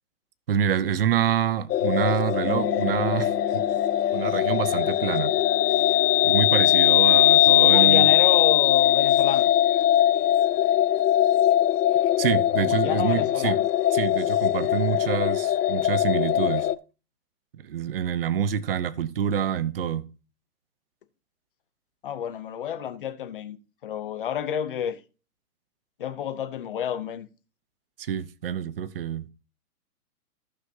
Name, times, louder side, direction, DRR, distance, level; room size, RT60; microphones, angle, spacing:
voice 1, 0.5-3.6 4.1-5.3 6.2-8.1 12.2-13.6 13.9-16.7 17.5-20.1 28.0-29.3, right 9 dB, 40° right, 0.6 m, -26 dB
sound 1, 1.7-16.8, left 12 dB, 85° left, 0.6 m, -21 dB
sound 2, 2.4-8.0, right 1 dB, 10° right, 2.9 m, -41 dB
voice 2, 7.6-9.5 12.6-13.7 22.0-23.6 23.8-25.0 26.0-27.3, left 9 dB, 35° left, 0.7 m, -30 dB
14.5 x 5.8 x 2.7 m
hypercardioid pair, 165°, 46 cm